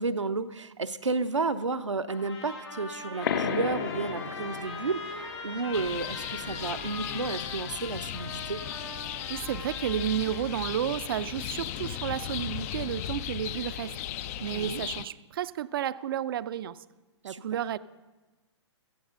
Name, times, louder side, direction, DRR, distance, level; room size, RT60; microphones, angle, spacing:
voice 1, 0.0-8.6 14.5-14.8 17.2-17.4, right 3 dB, 90° right, 10 dB, 0.7 m, -32 dB
sound 1, 2.1-10.5, left 2 dB, 80° left, 4.6 m, -42 dB
sound 2, 3.2-8.5, left 7 dB, 45° left, 0.9 m, -36 dB
sound 3, 5.7-15.0, left 11 dB, 30° left, 0.4 m, -36 dB
voice 2, 9.3-13.9 14.4-16.8 17.2-17.8, right 10 dB, 50° right, 16 dB, 0.4 m, -32 dB
17.0 x 13.5 x 3.7 m, 1.2 s
figure-of-eight pair, 125°, 15 cm